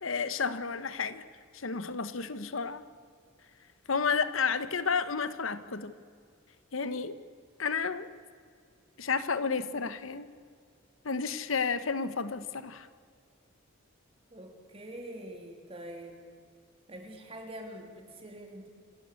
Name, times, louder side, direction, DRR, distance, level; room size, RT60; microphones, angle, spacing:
voice 1, 0.0-1.2 1.5-2.8 3.9-5.9 6.7-7.2 7.6-8.1 9.0-10.3 11.0-12.9, left 5 dB, 85° left, 13 dB, 1.1 m, -31 dB
voice 2, 14.3-16.2 16.9-18.7, right 1 dB, 30° right, 2 dB, 3.3 m, -45 dB
28.0 x 13.0 x 8.4 m, 2.1 s
head